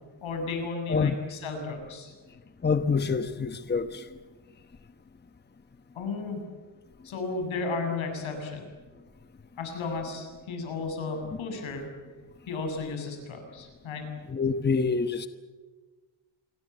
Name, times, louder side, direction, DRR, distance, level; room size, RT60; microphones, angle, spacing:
voice 1, 0.2-2.1 6.0-6.4 7.0-8.7 9.6-11.8 12.5-14.2, left 4 dB, 80° left, 5 dB, 7.3 m, -33 dB
voice 2, 2.6-4.0 14.3-15.3, left 5 dB, 20° left, 10 dB, 1.1 m, -26 dB
27.0 x 21.5 x 8.1 m, 1.4 s
cardioid pair, 125°, 47 cm